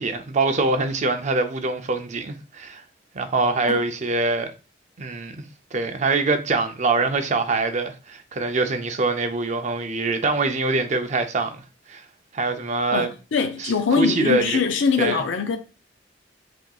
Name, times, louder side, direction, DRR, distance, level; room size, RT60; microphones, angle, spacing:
voice 1, 0.0-2.8 3.1-4.5 5.0-5.4 5.7-12.0 12.3-13.1 13.6-14.6 15.0-15.2, right 3 dB, 40° right, 0.5 m, -24 dB
voice 2, 12.9-15.6, left 5 dB, 75° left, 0.4 m, -23 dB
6.0 x 2.8 x 2.3 m
head